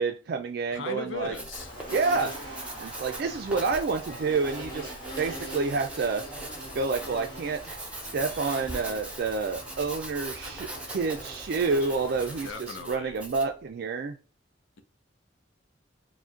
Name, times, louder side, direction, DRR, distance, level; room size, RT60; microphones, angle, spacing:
voice 1, 0.0-1.3 1.9-2.3 2.8-4.9 5.2-6.2 6.7-7.8 8.1-14.2, right 4 dB, 55° right, 0.4 m, -29 dB
voice 2, 0.7-1.7 12.4-13.2, left 4 dB, 75° left, 0.6 m, -37 dB
Writing, 1.2-13.6, right 1 dB, 5° right, 0.6 m, -41 dB
Insect, 1.5-12.5, equal, 25° left, 1.4 m, -43 dB
sound 1, 1.6-10.4 10.7-10.9, right 3 dB, 35° right, 1.1 m, -49 dB
4.9 x 2.1 x 3.8 m
head